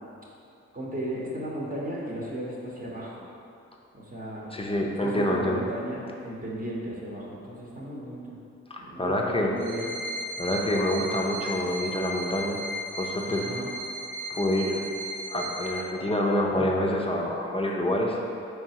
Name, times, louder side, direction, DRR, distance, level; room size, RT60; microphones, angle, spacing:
voice 1, 0.7-3.2 3.9-4.5 5.0-8.4 8.8-9.9 13.3-13.7 16.5-16.7, right 1 dB, 30° right, -5 dB, 0.9 m, -35 dB
voice 2, 4.5-5.6 8.7-9.5 10.4-12.6 13.0-13.4 14.3-14.8 15.3-18.2, left 1 dB, 20° left, -1 dB, 0.6 m, -27 dB
sound 1, 9.6-15.8, equal, 80° right, 0.6 m, -36 dB
4.3 x 3.2 x 2.8 m, 2.6 s
supercardioid pair, 40°, 30 cm